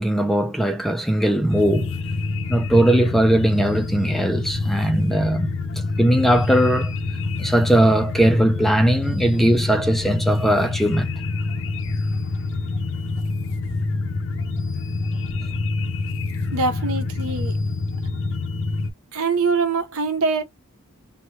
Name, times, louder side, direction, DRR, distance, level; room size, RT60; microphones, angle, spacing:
voice 1, 0.0-1.9 2.5-5.5 6.0-6.9 7.4-11.1, right 1 dB, ahead, 0.4 m, -19 dB
sound 1, 1.5-18.9, left 3 dB, 60° left, 0.5 m, -26 dB
voice 2, 16.5-17.6 19.1-20.4, right 4 dB, 75° right, 1.0 m, -23 dB
3.0 x 2.2 x 2.9 m
head